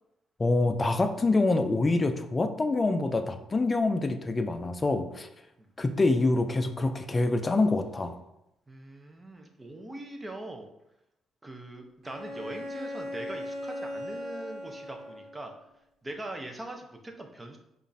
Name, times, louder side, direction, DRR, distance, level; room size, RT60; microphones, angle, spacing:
voice 1, 0.4-5.3 5.8-8.1, left 2 dB, 25° left, 8 dB, 0.4 m, -26 dB
voice 2, 8.7-10.7 11.4-15.5 16.0-17.6, right 1 dB, 20° right, 4 dB, 0.6 m, -42 dB
Bowed string instrument, 12.0-15.5, left 1 dB, 50° right, 1.4 m, -38 dB
5.1 x 2.5 x 2.6 m, 0.87 s
cardioid pair, 90°, 0 cm